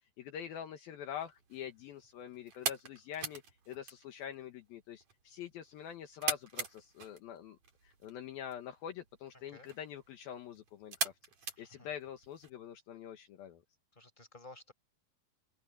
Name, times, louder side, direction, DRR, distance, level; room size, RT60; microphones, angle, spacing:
voice 1, 0.2-11.1 11.6-13.6, left 9 dB, 70° left, 3.1 m, -45 dB
sound 1, 1.1-12.5, right 5 dB, 45° right, 4.4 m, -43 dB
voice 2, 9.3-9.7 11.6-11.9 13.9-14.7, left 2 dB, 10° left, 6.1 m, -55 dB
open air
omnidirectional pair, 4.5 m